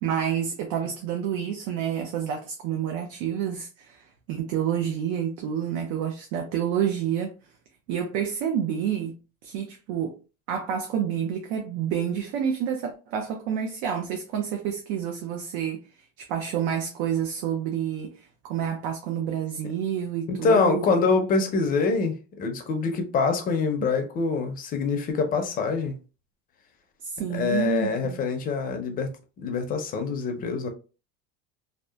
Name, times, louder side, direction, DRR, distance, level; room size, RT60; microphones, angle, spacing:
voice 1, 0.0-7.3 7.9-9.2 9.4-10.2 10.5-15.9 16.2-20.9 23.8-23.9 27.0-28.2, right 8 dB, 70° right, 0.5 m, -29 dB
voice 2, 20.3-26.0 27.3-29.1 29.4-30.7, left 4 dB, 30° left, 0.5 m, -25 dB
2.8 x 2.0 x 2.2 m
cardioid pair, 145°, 30 cm